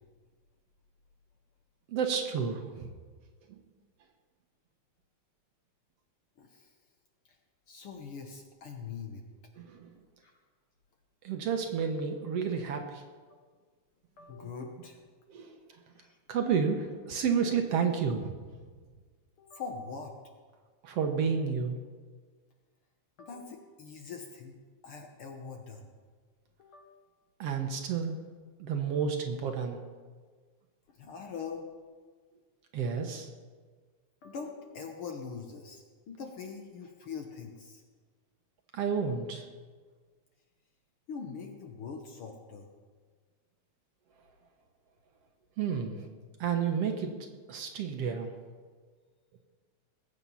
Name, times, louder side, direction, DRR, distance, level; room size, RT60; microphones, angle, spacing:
voice 1, 1.9-2.9 3.5-3.6 9.6-9.9 11.2-13.0 15.3-15.6 16.3-18.3 20.8-21.8 27.4-28.3 28.6-29.8 32.7-33.3 38.7-39.5 45.6-46.1 46.4-47.2 47.5-48.3, right 6 dB, 65° right, 4 dB, 1.9 m, -31 dB
voice 2, 6.4-6.8 7.3-7.4 7.7-9.2 10.2-10.3 14.2-15.0 15.9-16.2 19.4-20.1 23.2-25.9 26.6-27.0 30.9-31.7 34.2-37.8 41.1-42.7, left 5 dB, 60° left, 3 dB, 1.7 m, -43 dB
20.5 x 8.2 x 5.6 m, 1.5 s
omnidirectional pair, 3.3 m